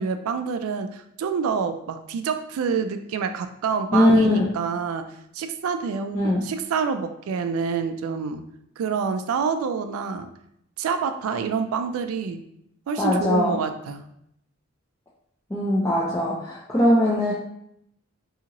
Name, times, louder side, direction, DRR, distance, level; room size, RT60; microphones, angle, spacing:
voice 1, 0.0-8.4 8.8-10.3 10.8-12.4 12.9-14.0, right 6 dB, 80° right, 9 dB, 0.3 m, -27 dB
voice 2, 3.9-4.5 6.1-6.5 13.0-13.6 15.5-17.3, left 1 dB, 10° left, -7 dB, 0.3 m, -20 dB
2.8 x 2.7 x 2.5 m, 0.75 s
head